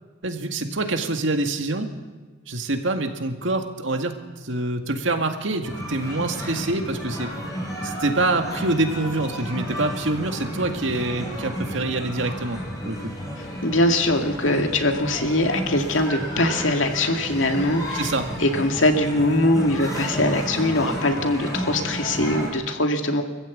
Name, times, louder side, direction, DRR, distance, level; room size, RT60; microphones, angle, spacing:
voice 1, 0.2-1.9 2.5-7.3 7.8-12.6 12.8-13.1 17.9-18.3, right 2 dB, 80° right, 5 dB, 2.0 m, -26 dB
sound 1, 5.6-22.5, equal, 20° left, 5.6 m, -33 dB
sound 2, 7.7-19.0, right 1 dB, 75° left, 6.4 m, -41 dB
voice 2, 13.4-18.1 18.4-23.2, left 1 dB, 90° left, 4 dB, 2.3 m, -22 dB
24.0 x 14.5 x 8.6 m, 1.3 s
head